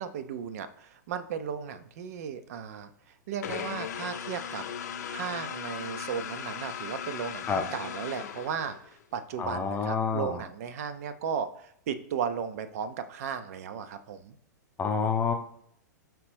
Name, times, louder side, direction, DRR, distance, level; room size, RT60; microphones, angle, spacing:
voice 1, 0.0-4.6 5.1-14.4, right 7 dB, 50° right, 10 dB, 0.4 m, -35 dB
sound 1, 3.4-9.0, left 8 dB, 60° left, 0.5 m, -38 dB
voice 2, 9.4-10.4 14.8-15.3, left 5 dB, 15° left, 4 dB, 0.6 m, -28 dB
4.9 x 3.0 x 3.2 m, 0.66 s
figure-of-eight pair, 105°, 10 cm